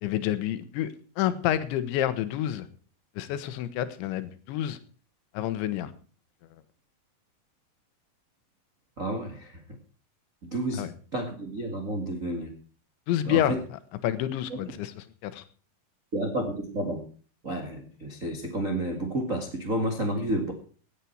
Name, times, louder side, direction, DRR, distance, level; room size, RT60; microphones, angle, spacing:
voice 1, 0.0-2.7 3.2-4.8 5.3-5.9 10.8-10.9 13.1-13.6 14.0-14.9 15.2-15.4, left 12 dB, 85° left, 13 dB, 3.5 m, -28 dB
voice 2, 9.0-9.6 10.4-12.5 13.2-13.6 14.5-14.6 16.1-17.0 17.4-20.5, right 1 dB, 50° right, 2 dB, 0.9 m, -31 dB
17.0 x 10.0 x 4.6 m, 0.40 s
omnidirectional pair, 5.2 m